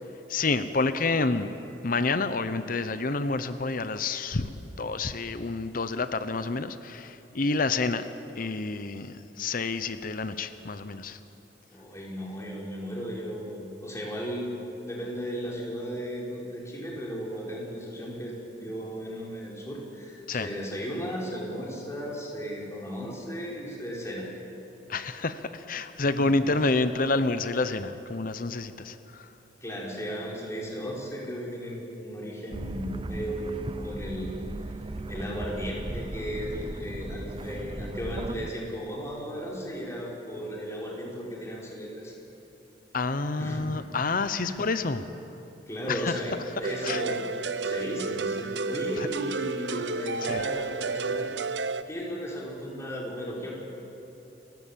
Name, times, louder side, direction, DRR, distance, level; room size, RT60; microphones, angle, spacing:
voice 1, 0.3-1.5 1.8-4.5 4.8-8.1 8.4-11.2 20.3-20.5 24.9-29.3 42.9-45.1 45.9-46.1 46.8-47.0 49.0-49.1 50.3-50.4, left 3 dB, 50° left, 11 dB, 0.8 m, -28 dB
voice 2, 11.7-14.6 14.8-24.3 26.0-26.6 29.6-34.4 35.0-42.2 43.4-43.7 44.3-44.5 45.7-46.3 46.6-47.2 47.6-51.3 51.9-53.5, equal, 15° left, -4 dB, 4.8 m, -35 dB
sound 1, 32.5-38.5, right 2 dB, 30° right, 0.6 m, -36 dB
sound 2, 46.6-51.8, right 4 dB, 80° right, 0.8 m, -31 dB
30.0 x 15.5 x 7.5 m, 2.9 s
head